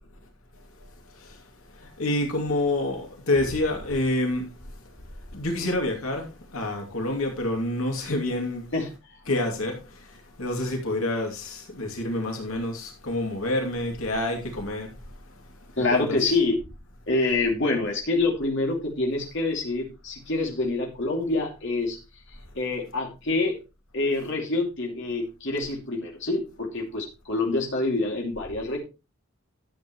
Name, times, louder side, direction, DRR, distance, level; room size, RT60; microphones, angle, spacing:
voice 1, 1.8-4.5 5.3-6.3 6.5-8.6 9.3-9.8 10.4-14.9 15.8-16.1, left 1 dB, 75° left, 2.6 m, -27 dB
voice 2, 15.8-16.6 17.1-22.0 22.5-23.6 23.9-28.8, left 2 dB, 55° left, 2.6 m, -26 dB
12.5 x 7.7 x 3.1 m
head